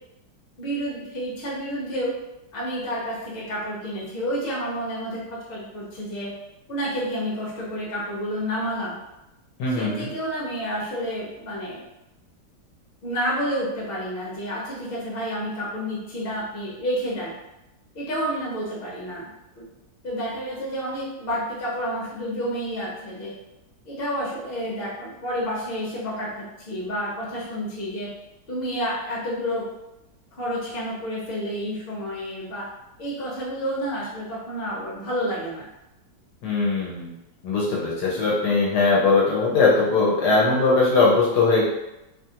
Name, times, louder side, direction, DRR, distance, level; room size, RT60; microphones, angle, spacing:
voice 1, 0.6-2.1 2.5-6.3 6.7-8.9 9.7-11.8 13.0-17.3 17.9-19.3 19.5-19.6 20.0-23.3 23.8-28.1 28.5-29.7 30.4-32.7 33.0-35.7, equal, 40° left, -6 dB, 0.9 m, -30 dB
voice 2, 9.6-10.1 36.4-37.1 37.4-41.6, left 3 dB, 70° left, -5 dB, 1.2 m, -20 dB
2.9 x 2.3 x 2.7 m, 0.93 s
omnidirectional pair, 1.9 m